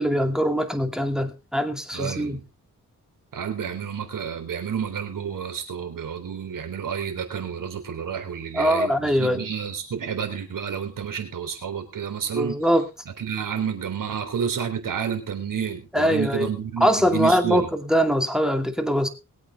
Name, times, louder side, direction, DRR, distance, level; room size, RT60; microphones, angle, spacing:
voice 1, 0.0-2.4 8.5-9.5 12.4-12.9 15.9-16.5 16.8-19.1, equal, ahead, 2.4 m, -22 dB
voice 2, 1.9-2.4 3.3-12.6 13.2-17.7, right 7 dB, 80° right, 3.5 m, -30 dB
21.5 x 8.5 x 3.5 m
cardioid pair, 90°, 32 cm